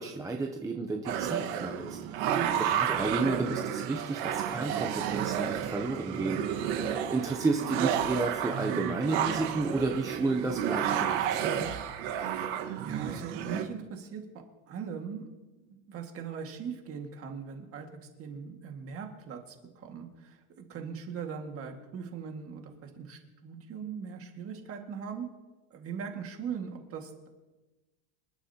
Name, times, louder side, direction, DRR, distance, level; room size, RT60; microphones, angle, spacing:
voice 1, 0.0-11.7, right 3 dB, 10° right, 2 dB, 0.5 m, -32 dB
sound 1, 1.1-13.6, right 9 dB, 60° right, 1.5 m, -31 dB
voice 2, 2.9-3.3 12.8-14.2 14.7-15.3 15.6-17.9 18.2-25.3 25.7-27.3, right 6 dB, 30° right, 3 dB, 1.9 m, -40 dB
26.5 x 11.5 x 2.8 m, 1.1 s
cardioid pair, 160°, 44 cm